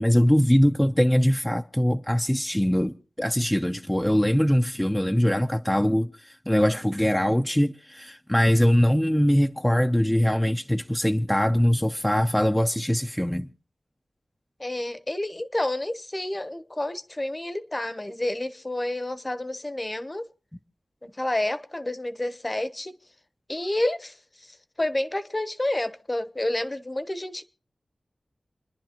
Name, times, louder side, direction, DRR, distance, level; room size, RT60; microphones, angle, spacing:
voice 1, 0.0-13.5, equal, 10° left, 0.6 m, -22 dB
voice 2, 14.6-20.2 21.0-22.9 23.5-24.1 24.8-27.4, left 1 dB, 30° left, 0.9 m, -29 dB
29.0 x 10.5 x 3.0 m
cardioid pair, 45°, 0 cm